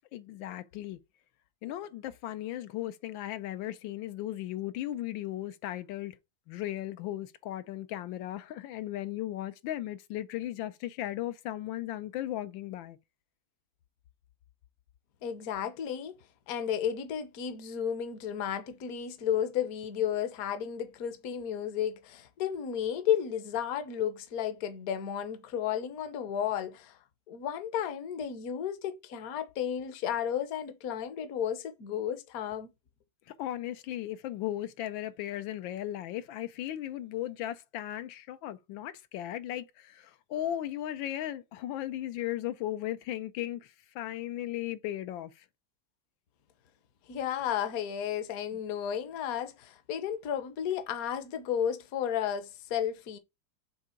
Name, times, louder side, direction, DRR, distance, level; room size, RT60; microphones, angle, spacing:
voice 1, 0.1-1.0 1.6-6.2 6.5-13.0 33.3-45.5, left 13 dB, 80° left, 1.3 m, -36 dB
voice 2, 15.2-16.1 16.5-27.0 27.3-32.7 47.1-53.2, left 9 dB, 55° left, 1.2 m, -33 dB
6.3 x 3.7 x 4.3 m
omnidirectional pair, 2.1 m